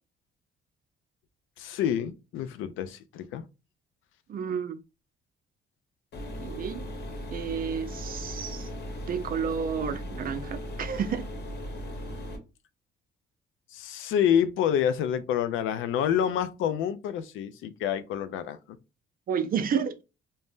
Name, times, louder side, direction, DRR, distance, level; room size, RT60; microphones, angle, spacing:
voice 1, 1.6-3.4 13.7-18.8, left 9 dB, 80° left, 0.4 m, -28 dB
voice 2, 4.3-4.8 6.4-6.8 7.3-8.7 9.1-11.3 19.3-20.0, right 7 dB, 45° right, 0.4 m, -31 dB
sound 1, 6.1-12.4, equal, 60° left, 0.9 m, -37 dB
2.7 x 2.1 x 3.4 m
cardioid pair, 90°, 20 cm